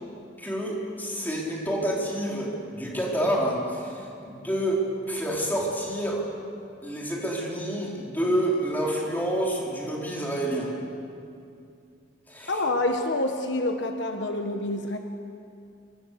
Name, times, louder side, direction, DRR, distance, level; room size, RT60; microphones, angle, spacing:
voice 1, 0.4-6.2 6.8-10.7 12.3-12.6, right 1 dB, 10° left, -3 dB, 4.0 m, -28 dB
voice 2, 12.5-15.0, left 2 dB, 60° left, 4 dB, 1.3 m, -27 dB
24.5 x 23.0 x 6.8 m, 2.5 s
head